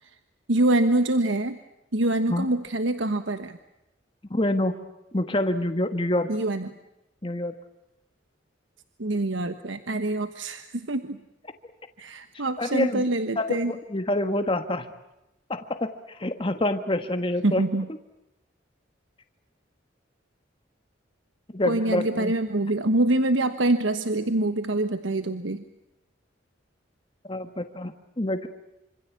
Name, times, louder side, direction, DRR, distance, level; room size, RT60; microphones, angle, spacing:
voice 1, 0.5-1.6 1.9-3.6 6.3-6.7 9.0-11.2 12.0-13.7 17.4-17.9 21.6-25.6, right 2 dB, 85° right, 9 dB, 1.3 m, -25 dB
voice 2, 4.3-4.8 5.1-6.3 7.2-7.5 12.6-13.0 13.4-14.9 15.5-15.9 16.2-17.6 21.5-22.3 27.3-28.5, left 1 dB, 25° left, 7 dB, 1.5 m, -26 dB
26.5 x 26.0 x 8.5 m, 0.91 s
head